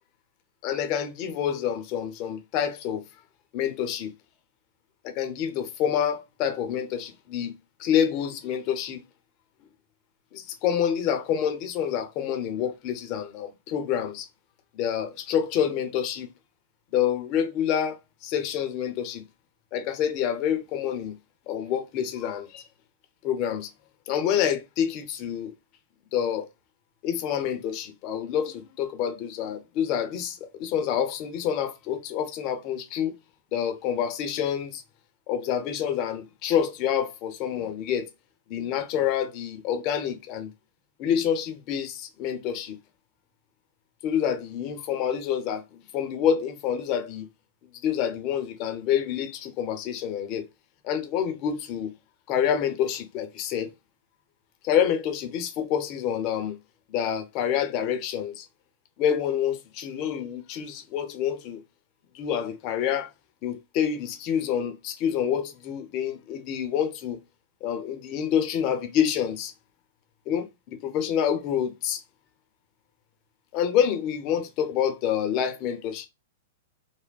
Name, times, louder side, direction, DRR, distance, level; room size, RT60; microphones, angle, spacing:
voice 1, 0.6-3.0 3.5-4.1 5.0-7.5 7.8-9.0 10.3-14.3 14.7-16.3 16.9-19.2 19.7-21.1 21.5-22.7 23.2-23.7 24.1-25.5 26.1-26.5 27.0-33.1 33.5-34.8 35.3-38.1 38.5-40.5 41.0-42.8 44.0-47.3 47.8-50.5 50.8-51.9 52.3-53.7 54.6-56.5 56.9-58.5 59.0-61.6 62.1-63.1 63.4-67.2 67.6-69.5 70.3-72.0 73.5-76.1, left 9 dB, 40° left, 0.6 m, -27 dB
3.4 x 2.1 x 2.2 m
hypercardioid pair, 120°, 0 cm